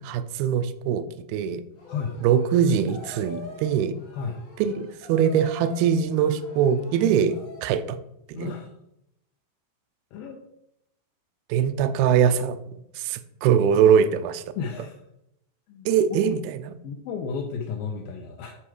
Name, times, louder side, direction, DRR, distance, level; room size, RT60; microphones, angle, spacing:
voice 1, 0.0-1.6 2.2-4.0 4.6-7.4 7.6-8.0 8.4-8.5 11.5-12.6 13.0-14.4 15.9-16.7, right 8 dB, 85° right, 10 dB, 2.1 m, -22 dB
sound 1, 1.8-7.9, left 2 dB, 45° left, 1.8 m, -44 dB
voice 2, 8.3-8.7 10.1-10.4 14.6-15.0 15.7-15.9 16.8-18.6, left 5 dB, 85° left, 3 dB, 2.0 m, -33 dB
8.7 x 4.5 x 4.8 m, 0.79 s
omnidirectional pair, 4.9 m